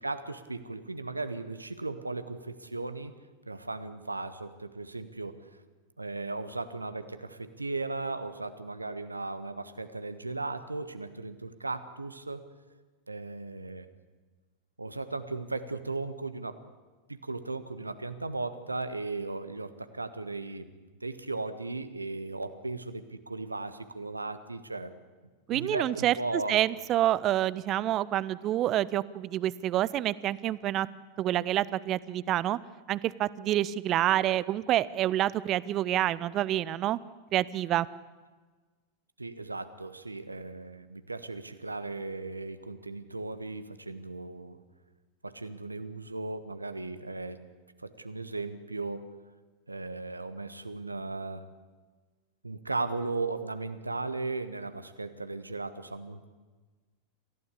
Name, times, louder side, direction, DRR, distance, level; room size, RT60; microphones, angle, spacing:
voice 1, 0.0-3.1 3.5-5.4 6.0-12.4 13.1-13.9 14.8-16.6 17.1-20.7 21.0-24.9 25.5-26.6 27.7-27.8 39.2-44.6 45.2-47.4 47.8-49.1 49.7-51.4 52.4-56.3, right 3 dB, 80° right, 11 dB, 1.4 m, -36 dB
voice 2, 25.5-26.1 26.5-30.9 31.2-32.6 32.9-37.0 37.3-37.9, right 13 dB, 35° right, 19 dB, 0.8 m, -27 dB
27.0 x 15.5 x 8.4 m, 1.4 s
figure-of-eight pair, 90°, 0 cm